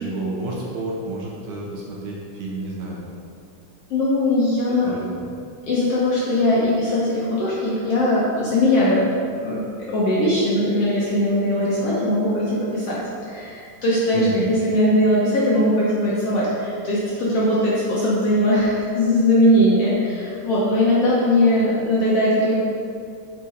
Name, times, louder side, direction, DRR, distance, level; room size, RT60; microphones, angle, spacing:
voice 1, 0.0-3.0 4.8-5.3 14.1-14.5, right 2 dB, 70° right, -3 dB, 2.0 m, -30 dB
voice 2, 3.9-4.9 5.6-9.1 9.4-9.6 9.9-13.0 13.3-22.6, left 1 dB, 65° left, -7 dB, 1.6 m, -20 dB
7.0 x 4.4 x 5.0 m, 2.4 s
omnidirectional pair, 3.8 m